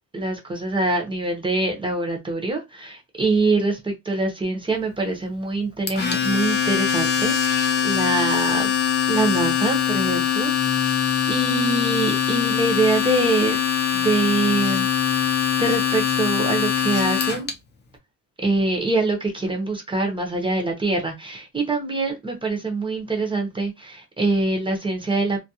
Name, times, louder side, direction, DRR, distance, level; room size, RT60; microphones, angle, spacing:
voice 1, 0.1-8.7 9.1-10.9 11.3-13.6 13.9-15.3 15.6-17.5 18.4-25.4, right 2 dB, 15° right, 0.6 m, -24 dB
Domestic sounds home sounds, 5.9-17.5, left 8 dB, 35° left, 0.6 m, -22 dB
2.3 x 2.2 x 2.7 m
cardioid pair, 145°, 32 cm